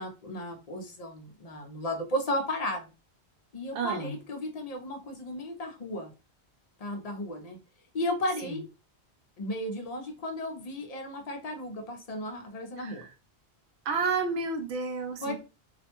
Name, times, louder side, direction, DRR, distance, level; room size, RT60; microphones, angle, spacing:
voice 1, 0.0-2.9 3.5-6.1 6.8-7.6 7.9-8.6 9.4-13.1 15.2-15.3, left 1 dB, 50° left, 0.5 m, -34 dB
voice 2, 3.7-4.1 8.4-8.6 12.8-13.1 13.8-15.3, right 4 dB, 80° right, 0.9 m, -31 dB
2.4 x 2.1 x 2.8 m
omnidirectional pair, 1.1 m